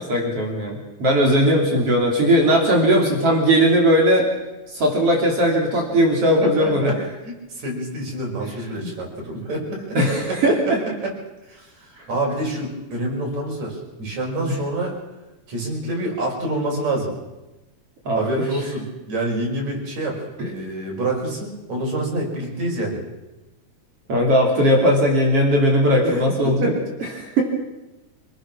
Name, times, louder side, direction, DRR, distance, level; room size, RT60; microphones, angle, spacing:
voice 1, 0.1-4.3 4.7-6.9 8.8-8.9 10.0-10.8 18.1-18.2 24.1-26.7 27.2-27.4, equal, 55° right, 0 dB, 4.2 m, -18 dB
voice 2, 6.4-7.0 7.3-10.0 10.3-10.7 11.0-11.1 11.5-14.9 15.5-17.2 18.1-23.0 26.0-26.9, right 1 dB, 70° right, -1 dB, 7.0 m, -27 dB
27.0 x 19.0 x 6.3 m, 1.0 s
omnidirectional pair, 3.3 m